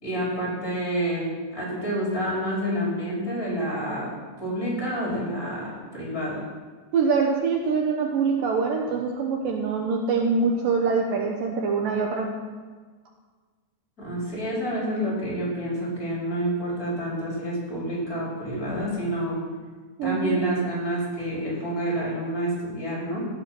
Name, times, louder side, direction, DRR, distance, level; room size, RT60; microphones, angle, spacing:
voice 1, 0.0-4.1 4.4-6.4 14.0-19.4 20.0-23.3, right 1 dB, 20° left, -6 dB, 5.0 m, -28 dB
voice 2, 6.9-12.3 20.0-20.5, right 5 dB, 70° right, 1 dB, 2.4 m, -24 dB
17.0 x 7.3 x 6.1 m, 1.5 s
omnidirectional pair, 4.5 m